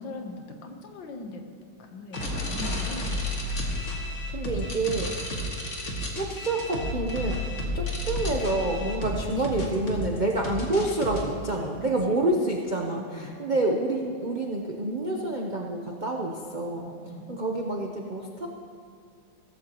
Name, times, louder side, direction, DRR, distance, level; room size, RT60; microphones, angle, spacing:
voice 1, 0.0-1.5 1.8-3.2 9.3-9.5 11.6-12.2 12.9-13.4 16.7-17.4, left 3 dB, 65° left, 4 dB, 1.7 m, -40 dB
sound 1, 2.1-11.2, left 1 dB, 40° left, 1.8 m, -31 dB
voice 2, 4.3-5.1 6.2-7.4 7.7-16.9 17.3-18.5, right 2 dB, 65° right, 0 dB, 0.4 m, -28 dB
16.5 x 14.5 x 3.0 m, 2.4 s
omnidirectional pair, 2.3 m